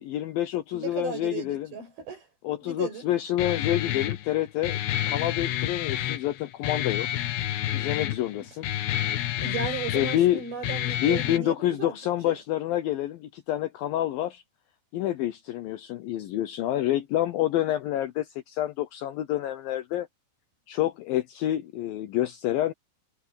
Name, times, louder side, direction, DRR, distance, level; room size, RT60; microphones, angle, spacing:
voice 1, 0.0-1.7 2.4-4.8 5.1-7.1 7.7-8.7 9.9-10.4 11.0-14.4 14.9-20.1 20.7-22.7, left 13 dB, 75° left, 2.4 m, -28 dB
voice 2, 0.7-2.3 2.6-3.1 8.4-8.5 9.4-12.0 12.3-12.4, right 6 dB, 65° right, 8.9 m, -36 dB
Guitar, 3.4-11.4, left 12 dB, 90° left, 3.6 m, -29 dB
omnidirectional pair, 4.7 m